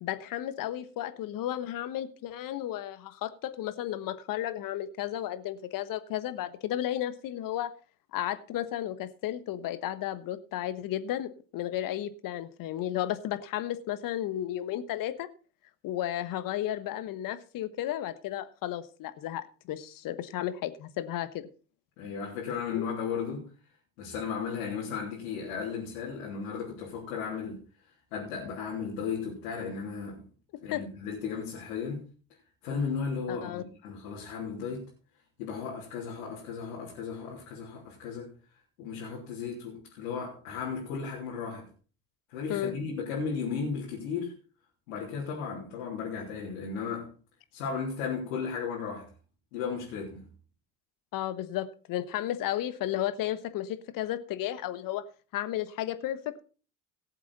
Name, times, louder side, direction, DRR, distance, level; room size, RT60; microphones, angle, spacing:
voice 1, 0.0-7.7 8.1-15.3 15.8-21.5 22.7-22.9 30.7-30.8 33.3-33.6 42.5-42.7 51.1-55.0 55.3-56.4, left 12 dB, 55° left, 1.3 m, -33 dB
voice 2, 22.0-23.5 24.0-27.6 28.1-30.3 30.6-32.1 32.6-34.9 35.4-38.4 38.8-41.7 42.3-44.3 44.9-47.1 47.5-49.1 49.5-50.3, left 6 dB, 75° left, 3.5 m, -35 dB
18.0 x 7.4 x 4.2 m
hypercardioid pair, 65°, 40 cm